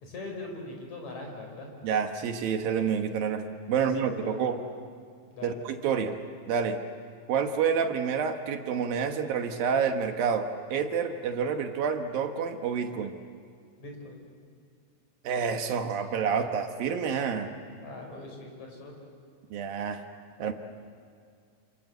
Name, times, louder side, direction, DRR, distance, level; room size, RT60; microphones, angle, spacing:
voice 1, 0.0-1.7 3.7-4.5 5.3-5.5 13.8-14.2 17.8-19.0, left 2 dB, 45° left, 1 dB, 6.0 m, -41 dB
voice 2, 1.8-4.6 5.4-6.2 6.5-6.8 7.3-13.1 15.2-17.5 19.5-20.0 20.4-20.5, right 6 dB, 65° right, 6 dB, 2.8 m, -28 dB
27.5 x 27.5 x 7.9 m, 2.2 s
omnidirectional pair, 4.7 m